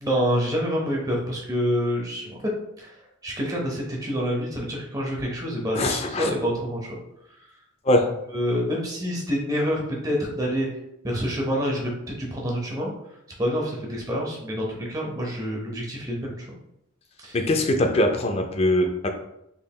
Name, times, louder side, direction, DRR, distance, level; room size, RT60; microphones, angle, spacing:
voice 1, 0.0-2.4 2.8-2.9 3.2-6.9 8.3-10.7 11.0-12.9 13.4-16.5 17.2-17.4, equal, 15° right, -2 dB, 0.6 m, -27 dB
voice 2, 5.7-6.3 7.9-8.1 17.3-19.1, left 1 dB, 30° left, 5 dB, 0.3 m, -22 dB
3.5 x 3.2 x 2.2 m, 0.81 s
head